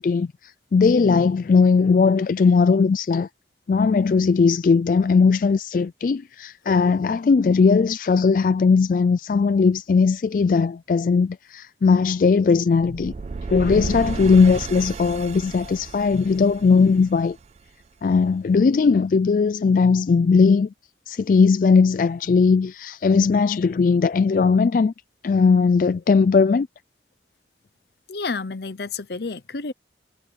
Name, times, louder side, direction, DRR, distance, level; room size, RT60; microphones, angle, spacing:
voice 1, 0.0-3.3 3.7-13.1 13.5-17.4 18.0-20.7 21.1-24.9 25.2-26.7, left 5 dB, 50° left, 0.3 m, -18 dB
sound 1, 12.8-17.8, right 4 dB, 35° right, 0.3 m, -33 dB
voice 2, 28.1-29.7, left 4 dB, 65° left, 0.8 m, -30 dB
head